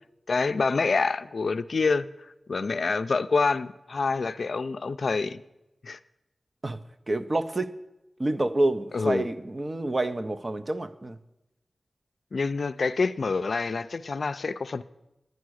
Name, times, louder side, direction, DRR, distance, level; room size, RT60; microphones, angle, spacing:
voice 1, 0.3-2.1 2.5-5.4 5.8-6.0 8.9-9.3 12.3-14.8, left 4 dB, 70° left, 0.4 m, -26 dB
voice 2, 7.1-7.7 8.2-11.2, right 2 dB, 35° right, 0.6 m, -28 dB
10.5 x 9.4 x 6.3 m
wide cardioid pair, 90°, 0 cm